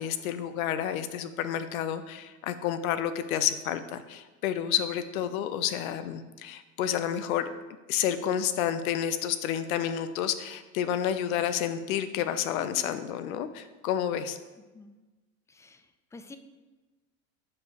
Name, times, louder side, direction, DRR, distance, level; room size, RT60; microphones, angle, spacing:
voice 1, 0.0-7.5 7.9-14.4, left 10 dB, 80° left, 11 dB, 0.7 m, -30 dB
voice 2, 15.5-16.4, left 3 dB, 5° left, 9 dB, 0.4 m, -49 dB
6.9 x 4.9 x 4.9 m, 1.2 s
hypercardioid pair, 90°, 41 cm